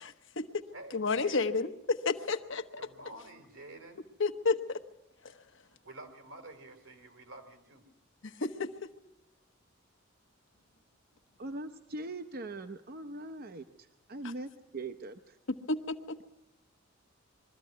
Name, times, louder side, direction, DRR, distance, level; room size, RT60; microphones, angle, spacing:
voice 1, 0.0-0.7 0.9-2.9 4.2-4.8 8.2-8.9 15.7-16.2, left 4 dB, 65° left, 7 dB, 1.0 m, -31 dB
voice 2, 0.7-1.5 2.8-4.0 5.6-7.8, right 2 dB, 85° right, 6 dB, 3.5 m, -49 dB
voice 3, 11.4-15.4, right 2 dB, 50° right, 9 dB, 0.7 m, -41 dB
22.0 x 14.0 x 9.4 m, 0.85 s
head